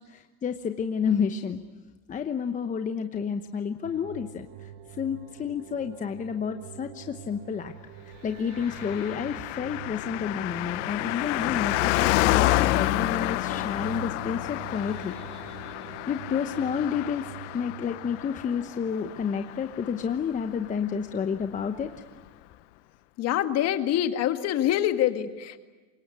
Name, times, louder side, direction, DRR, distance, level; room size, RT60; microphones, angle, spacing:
voice 1, 0.1-1.6 2.1-4.7 5.0-7.7 8.2-15.1 16.1-21.9, left 7 dB, 20° left, 7 dB, 1.0 m, -30 dB
sound 1, 3.8-19.3, right 10 dB, 55° right, 1.2 m, -45 dB
Car passing by, 8.5-20.4 20.6-20.7, left 18 dB, 70° left, 1.1 m, -29 dB
voice 2, 23.2-25.6, left 11 dB, 40° left, 8 dB, 2.0 m, -25 dB
25.5 x 23.0 x 9.7 m, 1.2 s
supercardioid pair, 125°, 38 cm